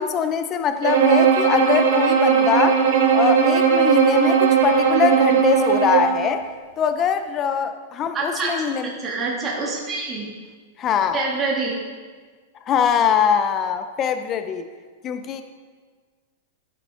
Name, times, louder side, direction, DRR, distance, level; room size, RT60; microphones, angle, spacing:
voice 1, 0.0-2.8 3.1-6.4 6.8-8.9 10.8-11.3 12.7-14.7 15.0-15.4, left 7 dB, 25° left, 9 dB, 0.5 m, -22 dB
Bowed string instrument, 0.8-6.2, right 7 dB, 90° right, 2.5 m, -17 dB
voice 2, 8.1-10.3 11.1-11.7, right 3 dB, 20° right, -4 dB, 2.3 m, -26 dB
14.5 x 8.4 x 3.7 m, 1.5 s
supercardioid pair, 160°, 0 cm